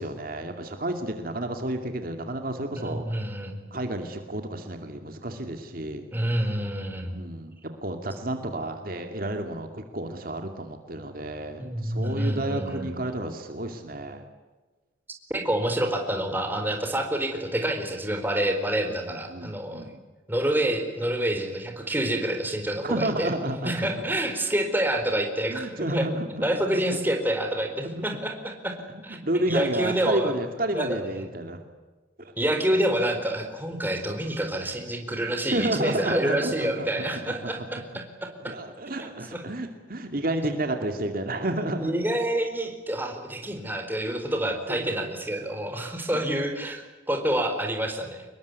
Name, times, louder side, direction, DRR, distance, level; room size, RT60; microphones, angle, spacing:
voice 1, 0.0-3.0 3.7-6.1 7.1-7.5 7.8-14.3 18.9-20.0 22.8-23.9 25.5-26.8 27.8-28.1 28.9-31.6 32.2-32.3 35.5-37.5 38.4-41.9 44.7-45.0 45.8-46.2, right 1 dB, 50° right, 5 dB, 2.4 m, -31 dB
voice 2, 2.8-3.6 6.1-7.2 11.6-12.9 15.3-19.9 20.3-23.3 23.6-26.0 26.4-28.7 29.0-29.2 29.5-30.3 30.7-31.3 32.4-38.5 39.0-39.4 41.8-48.3, right 1 dB, 10° right, 4 dB, 4.3 m, -28 dB
26.0 x 22.0 x 9.6 m, 1.2 s
head